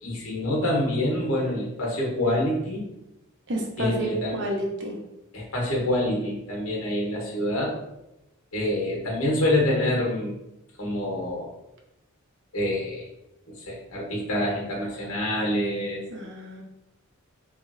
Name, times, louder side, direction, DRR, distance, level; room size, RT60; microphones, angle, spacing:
voice 1, 0.0-2.8 3.8-4.4 5.3-7.7 8.5-10.3 10.8-11.5 12.5-13.0 13.5-16.0, left 1 dB, 70° left, -2 dB, 0.9 m, -26 dB
voice 2, 3.5-5.0 16.1-16.6, right 1 dB, 55° right, 0 dB, 0.6 m, -30 dB
3.0 x 2.4 x 2.5 m, 0.89 s
head